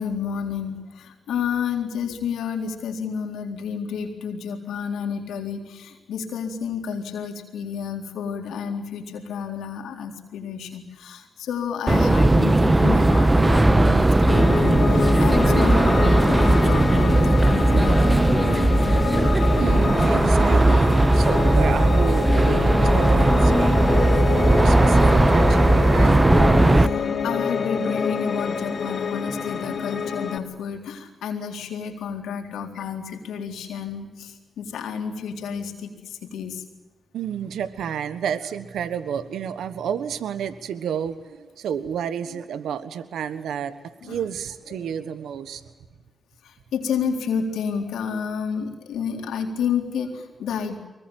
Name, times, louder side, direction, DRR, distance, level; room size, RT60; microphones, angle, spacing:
voice 1, 0.0-18.3 26.7-36.6 44.0-44.2 44.7-45.0 46.4-50.8, left 6 dB, 90° left, 4 dB, 4.0 m, -30 dB
sound 1, 11.9-26.9, right 2 dB, 20° right, 1.4 m, -17 dB
Piano, 14.3-30.4, left 5 dB, 60° left, 2.9 m, -27 dB
voice 2, 19.6-26.3 37.1-43.7 44.0-45.6, right 8 dB, 85° right, 12 dB, 1.3 m, -30 dB
24.0 x 22.5 x 9.1 m, 1.2 s
supercardioid pair, 50°, 0 cm